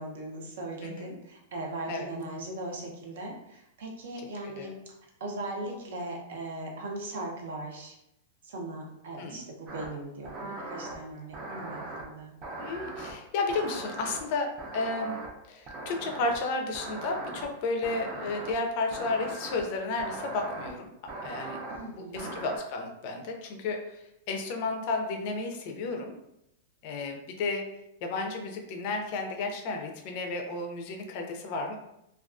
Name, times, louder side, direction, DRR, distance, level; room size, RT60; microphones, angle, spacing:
voice 1, 0.0-4.8 5.2-7.9 8.4-12.4 21.7-22.3, right 2 dB, 65° right, 1 dB, 0.6 m, -39 dB
voice 2, 0.8-1.1 1.9-2.1 4.4-4.7 9.2-9.4 12.6-15.2 15.5-20.9 21.2-21.6 21.9-26.1 26.8-27.7 28.0-31.8, left 3 dB, 40° left, 3 dB, 0.4 m, -32 dB
sound 1, 9.7-9.9 10.3-11.0 11.3-12.0 12.4-13.1 13.5-14.2 14.6-15.3 15.7-16.4 16.7-17.4 17.8-18.5 18.9-19.6 20.0-20.7 21.1-21.8 22.2-22.6, right 2 dB, 25° right, 0.4 m, -39 dB
2.3 x 2.2 x 2.4 m, 0.83 s
supercardioid pair, 165°, 0 cm